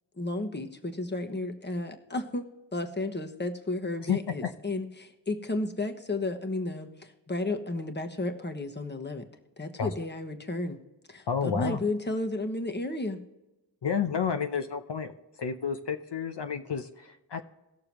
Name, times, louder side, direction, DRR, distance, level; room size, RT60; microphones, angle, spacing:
voice 1, 0.2-9.2 9.6-10.8 11.1-13.2, left 2 dB, 25° left, 5 dB, 1.2 m, -33 dB
voice 2, 4.1-4.5 9.8-9.9 11.3-11.8 13.8-15.1 15.4-17.4, left 7 dB, 70° left, 6 dB, 0.8 m, -30 dB
18.5 x 6.7 x 3.0 m, 0.99 s
wide cardioid pair, 105°, 44 cm